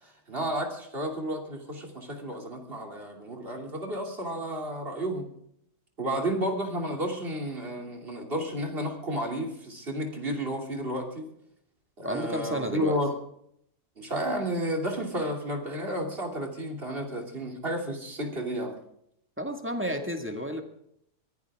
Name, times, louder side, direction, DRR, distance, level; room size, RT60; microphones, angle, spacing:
voice 1, 0.0-5.3 6.0-11.3 12.0-13.1 14.0-18.7, right 1 dB, 35° right, 2 dB, 3.1 m, -32 dB
voice 2, 12.0-13.0 19.4-20.6, equal, 5° right, 4 dB, 1.8 m, -31 dB
22.5 x 16.0 x 3.6 m, 0.72 s
omnidirectional pair, 1.7 m